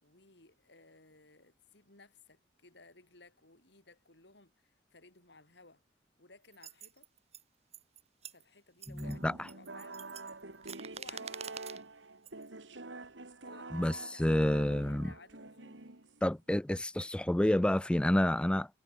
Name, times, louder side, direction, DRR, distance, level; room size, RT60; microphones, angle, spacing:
voice 1, 0.0-5.8 6.2-7.1 8.3-10.0 10.9-11.6 13.4-15.9 17.0-17.1, left 3 dB, 65° left, 5.3 m, -59 dB
sound 1, 6.5-7.4 7.7-8.4 8.8-9.2 9.5-11.8 12.3-12.5, right 8 dB, 35° right, 2.1 m, -47 dB
voice 2, 8.9-9.3 13.7-13.9 14.2-15.1 16.2-18.7, left 1 dB, 5° left, 0.3 m, -29 dB
sound 2, 9.0-16.4, right 3 dB, 85° right, 2.6 m, -47 dB
head